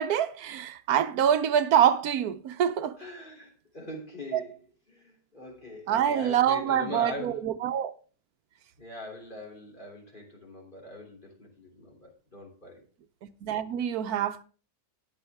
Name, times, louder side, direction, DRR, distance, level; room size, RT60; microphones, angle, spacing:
voice 1, 0.0-3.0 4.3-4.4 5.9-7.9 13.4-14.4, right 9 dB, 80° right, 1.2 m, -25 dB
voice 2, 3.0-4.6 4.9-7.4 8.8-12.8, left 1 dB, 30° left, 3.3 m, -42 dB
13.0 x 9.6 x 3.5 m
omnidirectional pair, 1.6 m